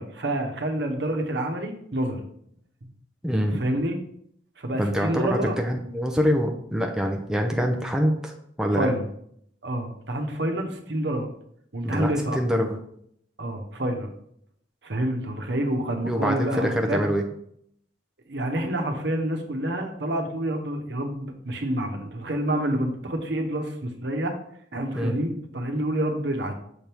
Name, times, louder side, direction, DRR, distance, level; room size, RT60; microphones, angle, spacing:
voice 1, 0.0-2.2 2.8-2.9 3.5-4.0 4.6-5.6 8.7-9.1 9.6-11.3 11.7-12.4 13.4-14.1 14.8-17.1 18.3-24.3 24.7-26.6, right 1 dB, 65° right, 3 dB, 1.0 m, -28 dB
voice 2, 3.2-3.6 4.8-8.3 8.6-8.9 11.8-12.8 16.1-17.2 24.9-25.2, equal, 5° right, 1 dB, 0.5 m, -25 dB
6.5 x 3.5 x 4.5 m, 0.68 s
head